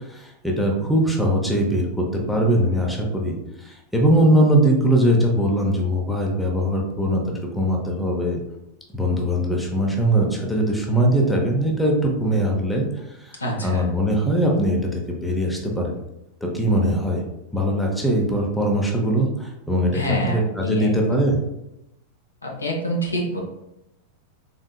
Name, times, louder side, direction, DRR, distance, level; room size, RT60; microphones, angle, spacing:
voice 1, 0.1-7.2 7.5-8.4 8.9-12.9 13.2-16.0 16.4-17.2 17.5-20.0 20.3-21.4, right 1 dB, 5° left, -1 dB, 0.8 m, -21 dB
voice 2, 13.4-13.9 19.9-21.2 22.4-23.4, equal, 80° left, -1 dB, 0.8 m, -27 dB
3.7 x 3.5 x 2.3 m, 0.88 s
figure-of-eight pair, 90°, 0 cm